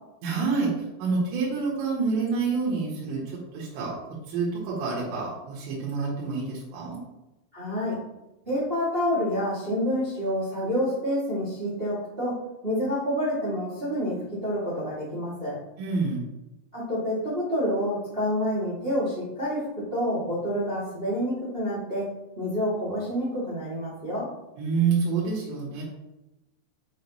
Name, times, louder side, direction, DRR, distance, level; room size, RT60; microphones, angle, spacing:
voice 1, 0.2-3.9 4.3-7.0 15.8-16.2 24.6-25.8, right 4 dB, 80° right, -5 dB, 3.7 m, -27 dB
voice 2, 7.5-7.9 8.4-12.3 12.6-14.1 14.4-15.5 16.7-19.6 19.9-22.0 22.3-24.3, equal, 20° right, -9 dB, 1.5 m, -28 dB
6.9 x 6.0 x 3.1 m, 0.96 s
omnidirectional pair, 5.2 m